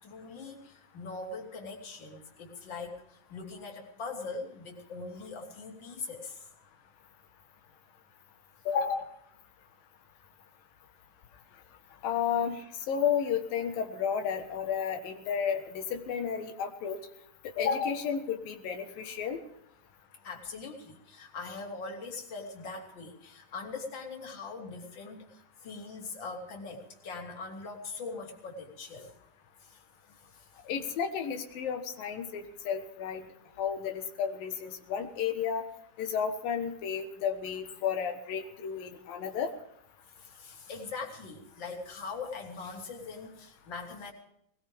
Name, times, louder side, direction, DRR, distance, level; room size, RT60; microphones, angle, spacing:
voice 1, 0.0-6.5 20.2-29.1 29.6-29.8 30.3-30.5 40.2-44.1, left 4 dB, 35° left, 0 dB, 3.4 m, -42 dB
voice 2, 8.7-9.1 12.0-17.0 17.6-19.4 30.7-33.3 33.6-35.6 36.0-39.5, left 7 dB, 85° left, 5 dB, 3.2 m, -32 dB
20.5 x 20.0 x 3.5 m, 0.72 s
omnidirectional pair, 3.9 m